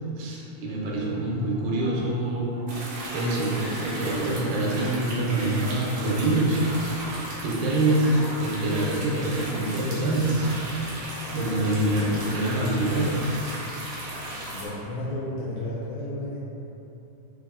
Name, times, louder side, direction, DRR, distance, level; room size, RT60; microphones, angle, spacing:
voice 1, 0.2-2.5 3.1-3.5 3.8-6.6 6.9-7.1 7.4-10.5 11.3-13.1, right 1 dB, 85° right, -4 dB, 2.4 m, -25 dB
sound 1, 0.6-7.4, right 1 dB, 65° left, 1.1 m, -42 dB
sound 2, 2.7-14.7, right 1 dB, 70° right, 1.6 m, -36 dB
voice 2, 12.0-12.6 14.5-16.4, left 1 dB, 80° left, -8 dB, 1.9 m, -33 dB
5.6 x 2.0 x 3.5 m, 3.0 s
omnidirectional pair, 4.0 m